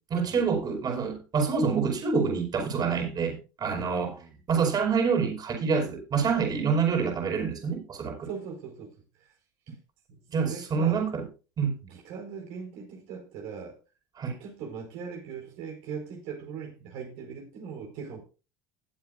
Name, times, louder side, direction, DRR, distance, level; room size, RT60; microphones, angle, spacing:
voice 1, 0.1-4.1 4.5-8.3 10.3-11.2 11.6-11.8 14.2-14.4, right 5 dB, 40° right, 5.1 m, -27 dB
voice 2, 3.7-4.3 8.2-8.9 9.2-9.3 9.7-9.8 10.1-11.0 11.8-13.8 14.4-18.2, right 6 dB, 70° right, 4.6 m, -40 dB
20.0 x 7.9 x 2.5 m
hypercardioid pair, 85°, 10 cm